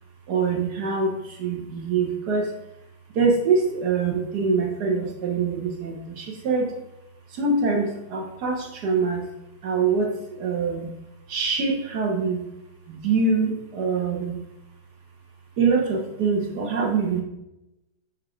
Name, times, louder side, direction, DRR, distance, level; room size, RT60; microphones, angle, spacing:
voice 1, 0.3-2.5 3.1-6.7 7.3-9.3 9.6-10.9 11.3-12.4 12.9-14.4 15.6-17.2, right 4 dB, 60° right, 2 dB, 1.3 m, -24 dB
6.8 x 3.1 x 4.8 m, 0.88 s
omnidirectional pair, 2.2 m